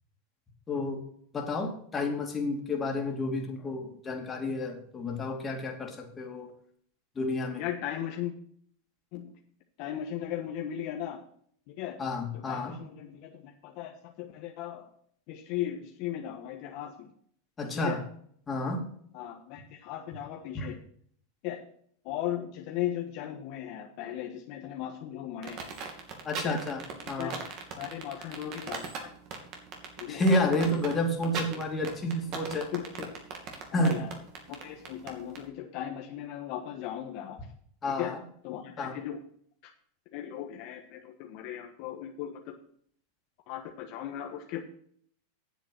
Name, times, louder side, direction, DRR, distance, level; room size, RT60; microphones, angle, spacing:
voice 1, 0.7-1.0 1.3-6.5 7.2-7.6 12.0-12.8 17.6-18.0 18.5-18.9 20.5-20.7 26.2-27.4 30.1-32.7 33.7-34.0 37.8-38.2 38.8-38.9, left 1 dB, 20° left, 2 dB, 2.6 m, -30 dB
voice 2, 7.6-8.3 9.1-9.3 9.8-11.2 11.7-12.0 12.3-14.9 15.3-17.1 17.7-18.0 19.1-20.8 21.4-21.6 22.0-25.7 26.4-26.6 27.2-27.4 27.7-29.1 30.0-30.2 32.7-33.1 33.7-34.1 34.5-37.4 37.8-38.2 38.4-39.2 39.6-39.7 40.1-42.5 43.5-44.6, left 11 dB, 55° left, 2 dB, 1.3 m, -37 dB
sound 1, 25.4-35.4, right 6 dB, 50° right, 2.7 m, -38 dB
9.2 x 7.9 x 6.0 m, 0.63 s
hypercardioid pair, 110°, 0 cm